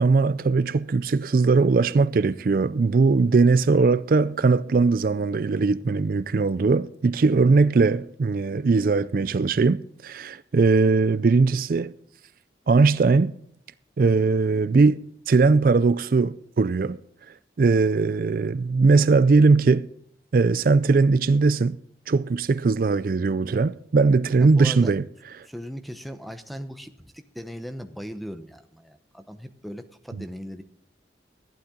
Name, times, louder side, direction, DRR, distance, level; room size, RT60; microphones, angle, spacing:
voice 1, 0.0-11.9 12.7-13.3 14.0-15.0 15.3-17.0 17.6-19.9 20.3-21.8 22.1-25.0, right 4 dB, 50° right, 0.4 m, -20 dB
voice 2, 24.4-24.9 25.4-30.6, equal, ahead, 0.9 m, -38 dB
15.0 x 11.5 x 3.8 m
head